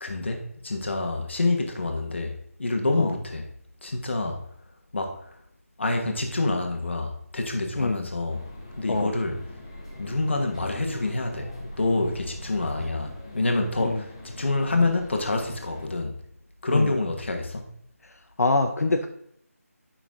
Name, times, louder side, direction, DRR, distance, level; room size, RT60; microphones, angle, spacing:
voice 1, 0.0-3.5 3.8-4.4 4.9-5.1 5.8-8.4 8.8-9.4 10.0-16.1 16.6-17.7, left 2 dB, 45° left, 4 dB, 1.3 m, -27 dB
sound 1, 8.3-15.9, left 1 dB, 20° left, 0.9 m, -41 dB
voice 2, 18.0-19.1, left 2 dB, 75° left, 5 dB, 0.7 m, -25 dB
8.8 x 5.7 x 3.6 m, 0.71 s
figure-of-eight pair, 175°, 8 cm